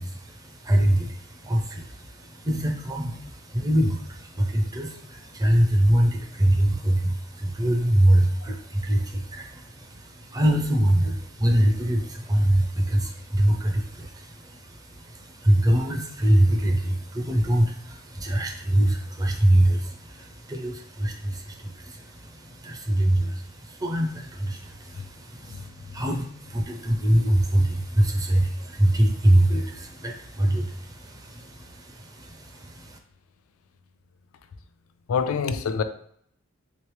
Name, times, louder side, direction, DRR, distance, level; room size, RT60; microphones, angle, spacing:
voice 1, 0.0-33.0, right 1 dB, 20° right, 2 dB, 0.5 m, -24 dB
voice 2, 35.1-35.8, left 6 dB, 90° left, 9 dB, 0.4 m, -26 dB
3.2 x 3.1 x 3.1 m, 0.67 s
head